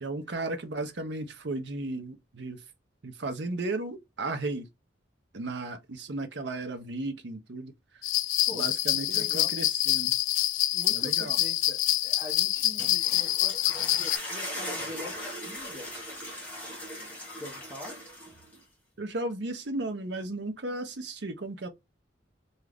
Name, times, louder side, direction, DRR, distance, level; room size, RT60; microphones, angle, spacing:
voice 1, 0.0-2.6 3.0-4.6 5.3-7.7 8.5-10.1 10.9-11.4 19.0-21.7, right 2 dB, 60° right, 0.7 m, -35 dB
sound 1, 8.0-14.2, left 14 dB, 85° left, 0.3 m, -26 dB
voice 2, 9.1-9.7 10.7-15.9 17.4-18.0, left 1 dB, 10° right, 0.8 m, -43 dB
sound 2, 12.6-18.6, left 1 dB, 10° left, 1.1 m, -39 dB
2.6 x 2.4 x 3.3 m
head